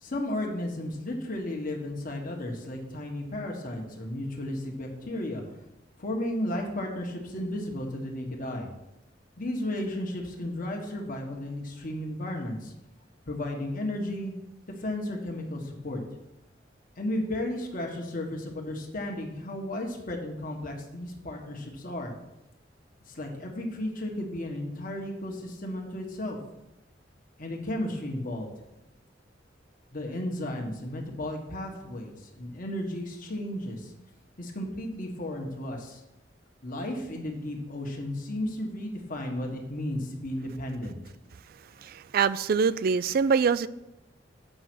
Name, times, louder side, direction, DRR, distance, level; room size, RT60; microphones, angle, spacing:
voice 1, 0.0-5.4 6.0-8.7 9.4-12.7 13.3-14.3 14.8-16.0 17.0-22.1 23.1-26.4 27.4-28.5 29.9-33.9 34.4-36.0 36.6-41.0, left 1 dB, 50° left, 1 dB, 1.5 m, -34 dB
voice 2, 41.8-43.7, right 5 dB, 55° right, 17 dB, 0.3 m, -24 dB
7.9 x 5.6 x 6.2 m, 0.93 s
head